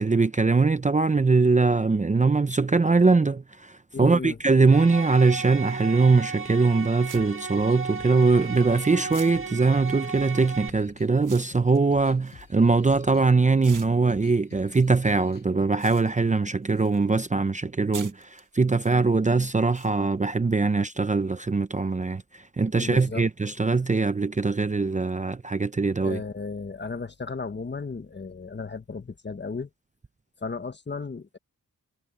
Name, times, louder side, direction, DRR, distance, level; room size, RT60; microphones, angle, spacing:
voice 1, 0.0-26.2, right 4 dB, 20° right, 0.7 m, -22 dB
voice 2, 3.9-4.4 22.8-23.2 26.0-29.7 30.4-31.4, left 4 dB, 30° left, 1.3 m, -34 dB
sound 1, 4.7-10.7, right 5 dB, 40° right, 2.0 m, -35 dB
sound 2, 5.1-5.2 6.4-6.5 7.1-8.7 9.1-13.2 13.6-17.1 17.4-18.9 19.7-19.9, right 7 dB, 65° right, 1.6 m, -47 dB
sound 3, 7.1-15.7, left 6 dB, 70° left, 7.5 m, -50 dB
wide cardioid pair, 90°, 34 cm